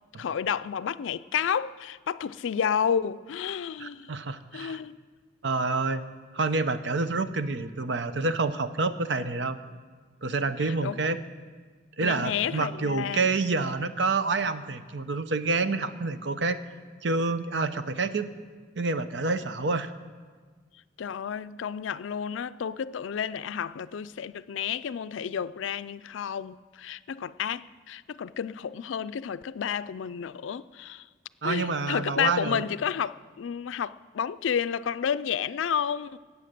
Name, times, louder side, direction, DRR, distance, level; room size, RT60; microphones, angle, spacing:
voice 1, 0.2-4.1 4.5-5.0 10.6-11.2 12.0-13.3 21.0-31.1 31.4-36.2, left 8 dB, 85° left, 0.4 m, -31 dB
voice 2, 3.8-4.8 5.4-6.0 6.3-9.6 10.2-11.2 12.0-16.6 17.0-18.3 18.8-19.9 31.4-32.6, right 3 dB, 70° right, 0.7 m, -28 dB
16.0 x 8.3 x 6.7 m
head